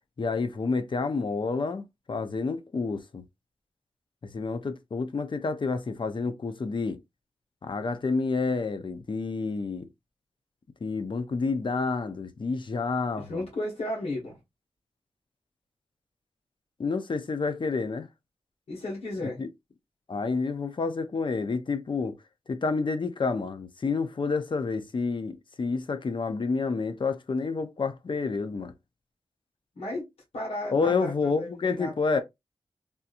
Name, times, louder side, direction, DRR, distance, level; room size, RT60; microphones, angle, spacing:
voice 1, 0.2-3.2 4.3-7.0 7.6-9.9 10.8-13.4 16.8-18.1 19.4-19.5 20.1-22.2 22.5-28.7 30.7-32.2, left 4 dB, 55° left, 0.6 m, -29 dB
voice 2, 13.1-14.4 18.7-19.4 29.7-30.9 31.2-32.2, left 1 dB, 85° left, 1.6 m, -34 dB
3.5 x 2.8 x 2.5 m
wide cardioid pair, 80°, 10 cm